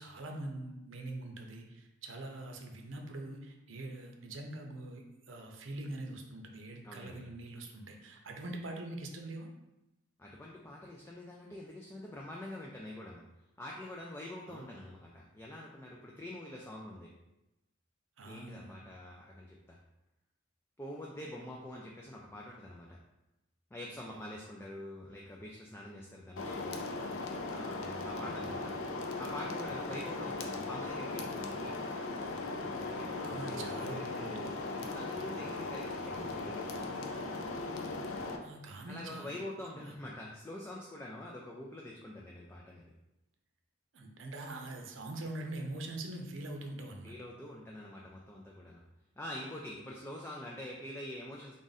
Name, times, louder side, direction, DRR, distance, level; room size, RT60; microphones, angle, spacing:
voice 1, 0.0-9.5 14.5-14.8 18.2-18.8 24.1-24.4 28.4-28.6 33.2-34.6 38.4-39.4 39.7-39.9 43.9-47.1, right 2 dB, 80° right, 3 dB, 0.6 m, -43 dB
voice 2, 6.8-7.3 10.2-13.2 13.6-17.1 18.2-19.8 20.8-23.0 23.7-26.8 27.5-28.7 29.2-31.7 32.5-36.8 38.9-42.9 47.0-48.8 49.2-51.5, left 1 dB, 10° left, -2 dB, 0.3 m, -45 dB
sound 1, 26.4-38.4, left 3 dB, 75° left, 0.5 m, -38 dB
3.6 x 2.5 x 4.0 m, 0.94 s
head